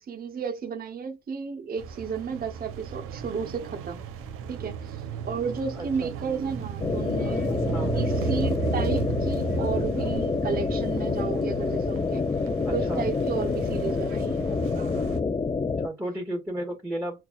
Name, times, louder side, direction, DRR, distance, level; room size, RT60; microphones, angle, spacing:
voice 1, 0.1-4.0 4.5-7.6 7.9-12.2 12.7-14.5 14.8-15.0, right 6 dB, 45° right, 0.7 m, -33 dB
sound 1, 1.8-15.2, right 6 dB, 85° right, 0.6 m, -34 dB
voice 2, 5.8-6.1 7.7-7.9 12.7-13.0 15.8-17.3, right 1 dB, 10° right, 1.8 m, -33 dB
sound 2, 6.8-15.9, left 4 dB, 20° left, 0.4 m, -27 dB
5.9 x 2.3 x 2.3 m
supercardioid pair, 55°, 21 cm